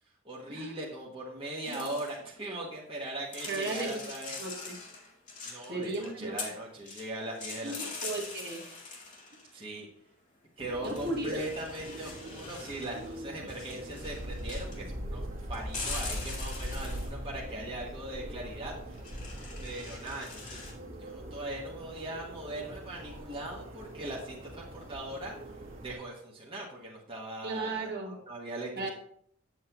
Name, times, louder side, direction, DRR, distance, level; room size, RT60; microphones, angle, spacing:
voice 1, 0.2-4.3 5.4-8.2 9.5-9.9 10.6-15.2 15.5-19.0 19.6-20.6 21.0-25.3 25.8-28.9, right 1 dB, 25° right, -4 dB, 1.3 m, -40 dB
sound 1, 1.6-2.3 3.3-6.1 6.4-7.1 7.3-9.5 10.8-13.2 13.5-14.8 15.7-17.1 18.9-20.7, left 3 dB, 40° left, 2.1 m, -43 dB
voice 2, 3.5-4.0 4.4-4.7 5.7-6.3 7.6-8.6 10.8-11.4 27.4-28.2 28.7-28.9, right 2 dB, 50° right, -1 dB, 1.8 m, -35 dB
sound 2, 10.6-26.0, equal, 70° right, 1.8 m, -42 dB
8.5 x 8.0 x 3.0 m, 0.63 s
head